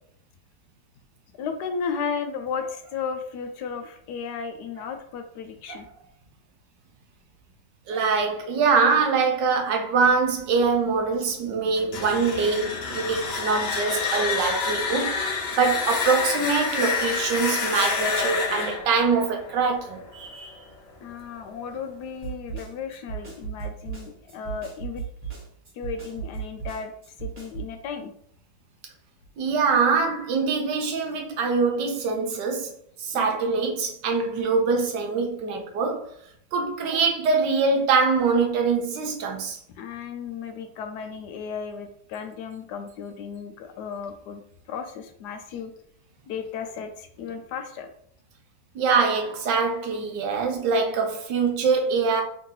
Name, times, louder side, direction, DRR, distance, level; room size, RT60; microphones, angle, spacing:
voice 1, 1.4-5.9 21.0-25.0 25.7-26.9 27.2-28.1 33.1-33.3 39.8-44.4 44.7-45.7 46.3-47.9, left 6 dB, 75° left, 1.1 m, -34 dB
voice 2, 7.9-15.1 15.6-20.6 29.4-32.7 33.0-36.1 36.5-39.6 48.7-52.2, right 4 dB, 85° right, 1.5 m, -24 dB
sound 1, 11.8-20.6, left 4 dB, 55° left, 0.7 m, -28 dB
Snare drum, 22.2-27.7, right 7 dB, 35° right, 1.7 m, -36 dB
3.6 x 2.8 x 3.8 m
omnidirectional pair, 1.9 m